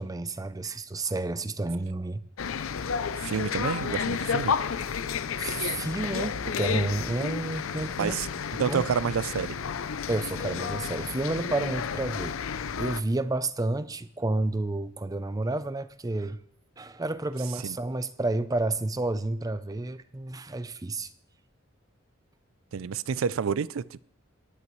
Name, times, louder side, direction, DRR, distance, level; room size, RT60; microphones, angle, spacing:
voice 1, 0.0-2.2 5.4-8.2 8.7-8.9 10.1-12.4 12.8-16.4 16.8-21.1, right 2 dB, 20° right, 0.5 m, -30 dB
sound 1, 2.4-13.0, left 6 dB, 85° left, 0.5 m, -31 dB
voice 2, 3.2-4.6 8.0-8.3 8.6-9.6 17.6-17.8 22.7-24.0, right 6 dB, 80° right, 0.4 m, -29 dB
20.0 x 9.7 x 3.1 m
head